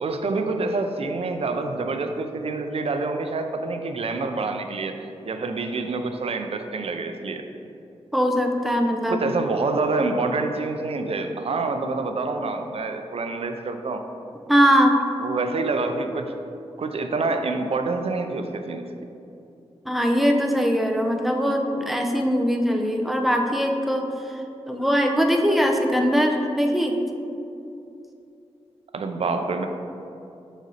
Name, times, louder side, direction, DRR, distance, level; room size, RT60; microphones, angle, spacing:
voice 1, 0.0-7.5 9.1-14.1 15.2-16.3 16.8-18.9 28.9-29.7, right 3 dB, 60° right, 6 dB, 0.5 m, -27 dB
voice 2, 8.1-9.2 14.5-15.0 19.9-27.0, equal, ahead, 3 dB, 0.6 m, -21 dB
6.1 x 4.1 x 4.0 m, 2.7 s
cardioid pair, 60°, 11 cm